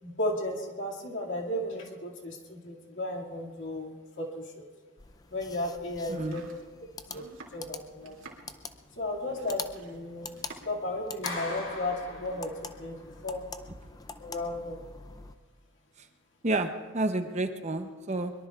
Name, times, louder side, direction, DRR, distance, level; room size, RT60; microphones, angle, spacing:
voice 1, 0.0-4.4 5.3-6.4 7.1-7.2 7.5-8.2 9.0-10.3 10.6-12.5 12.8-13.5 14.2-14.8, left 1 dB, 60° left, -1 dB, 2.3 m, -34 dB
sound 1, 5.0-15.4, left 4 dB, 20° left, 0.5 m, -45 dB
voice 2, 6.1-6.4 16.4-18.3, right 2 dB, 35° right, 7 dB, 0.8 m, -30 dB
Domestic sounds home sounds, 6.1-10.9 11.1-11.8, right 3 dB, 75° right, 2.6 m, -51 dB
Clapping, 11.2-12.9, left 2 dB, 85° left, 6.0 m, -39 dB
23.0 x 22.0 x 2.4 m, 1.4 s
head